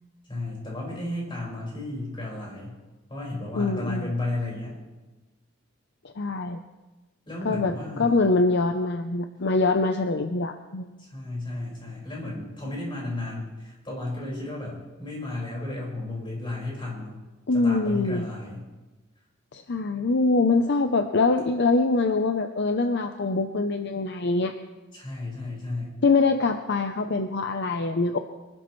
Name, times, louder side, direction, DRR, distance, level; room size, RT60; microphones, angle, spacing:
voice 1, 0.3-2.8 3.1-4.8 7.3-8.2 11.1-17.2 17.5-18.7 24.9-25.9, left 2 dB, 25° left, -4 dB, 5.2 m, -33 dB
voice 2, 3.5-4.1 6.2-6.6 7.4-11.0 17.5-18.3 19.5-24.5 26.0-28.2, left 3 dB, 55° left, 7 dB, 0.7 m, -24 dB
24.0 x 12.5 x 3.2 m, 1.2 s
head